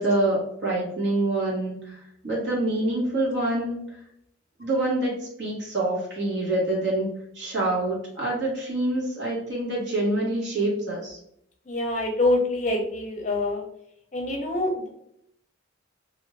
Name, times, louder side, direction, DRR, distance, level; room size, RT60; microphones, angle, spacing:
voice 1, 0.0-3.8 4.6-7.1 7.3-11.2, right 1 dB, 60° right, -4 dB, 1.3 m, -26 dB
voice 2, 11.7-13.6 14.1-14.9, left 2 dB, 35° left, 1 dB, 0.6 m, -25 dB
2.6 x 2.5 x 3.1 m, 0.72 s
head